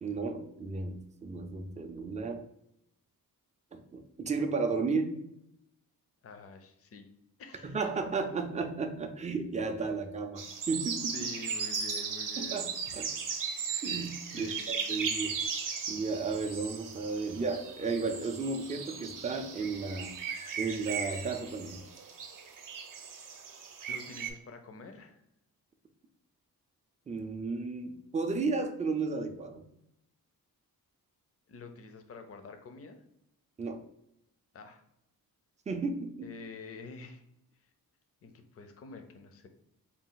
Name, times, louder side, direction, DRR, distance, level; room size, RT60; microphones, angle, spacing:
voice 1, 0.0-2.5 3.7-5.2 7.6-11.3 12.4-13.1 13.8-15.4 15.9-20.1 20.6-21.8 27.1-29.6 33.6-33.8 35.7-36.3, right 4 dB, 20° right, 5 dB, 0.4 m, -34 dB
voice 2, 6.2-7.1 7.4-7.9 11.1-12.6 14.3-15.0 23.9-25.2 31.5-33.0 34.5-34.8 36.2-37.2 37.6-37.7 38.2-39.5, left 4 dB, 40° left, 7 dB, 0.5 m, -47 dB
sound 1, 10.4-24.3, right 6 dB, 60° right, 0.7 m, -37 dB
4.1 x 2.3 x 3.8 m, 0.79 s
wide cardioid pair, 150°, 36 cm